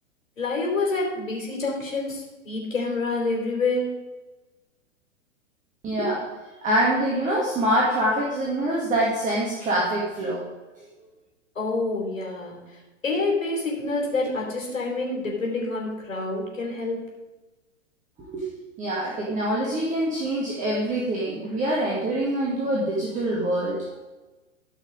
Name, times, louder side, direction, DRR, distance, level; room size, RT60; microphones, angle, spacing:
voice 1, 0.4-4.0 11.5-17.0, left 3 dB, 75° left, -2 dB, 4.1 m, -27 dB
voice 2, 5.8-6.2 6.6-10.4 18.2-18.5 18.8-23.8, right 1 dB, 20° right, -4 dB, 1.9 m, -25 dB
14.0 x 6.0 x 5.3 m, 1.2 s
figure-of-eight pair, 110°, 40 cm